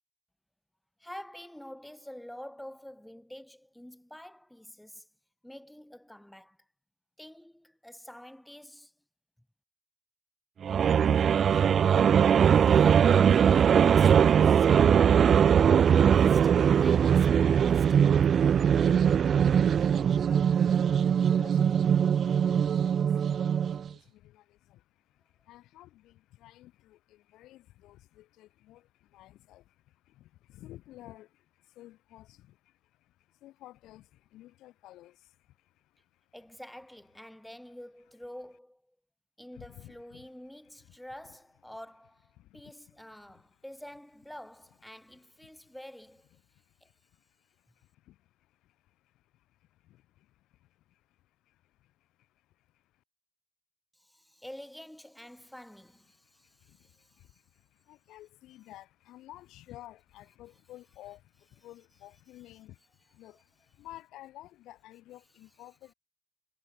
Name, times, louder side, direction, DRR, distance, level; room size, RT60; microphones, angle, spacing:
voice 1, 1.0-5.1 5.4-6.6 7.2-8.9 12.7-18.1 36.3-38.9 39.4-46.3 46.8-46.9 53.9-57.4, left 1 dB, 5° left, 2.9 m, -47 dB
sound 1, 10.6-23.9, right 8 dB, 55° right, 0.3 m, -21 dB
voice 2, 19.2-36.3 39.5-40.3 41.2-41.3 42.3-43.1 43.3-43.5 45.4-45.8 46.5-53.0 56.2-65.9, left 15 dB, 90° left, 3.2 m, -54 dB
cardioid pair, 90°, 0 cm